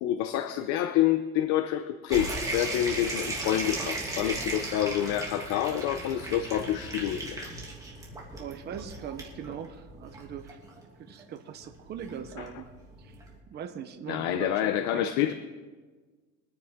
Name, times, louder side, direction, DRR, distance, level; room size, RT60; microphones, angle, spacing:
voice 1, 0.0-7.5 14.1-15.3, left 11 dB, 70° left, 9 dB, 0.8 m, -28 dB
sound 1, 2.1-13.4, right 2 dB, 10° right, 2.5 m, -37 dB
voice 2, 8.4-10.6 11.0-12.7 13.0-13.2 13.5-15.3, right 8 dB, 35° right, 6 dB, 0.9 m, -41 dB
23.5 x 9.3 x 3.7 m, 1.4 s
cardioid pair, 155°, 29 cm